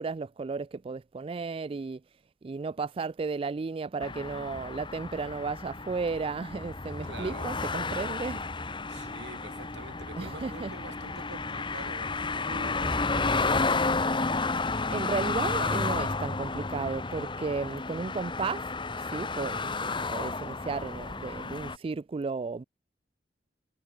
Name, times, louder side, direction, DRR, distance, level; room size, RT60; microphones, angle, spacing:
voice 1, 0.0-2.0 2.4-8.4 10.2-10.7 14.6-18.7 19.0-22.6, right 4 dB, 30° right, 0.3 m, -34 dB
sound 1, 4.0-21.8, left 3 dB, 25° left, 1.5 m, -32 dB
voice 2, 7.0-7.5 8.9-14.3 19.6-19.9, right 2 dB, 70° right, 2.9 m, -46 dB
head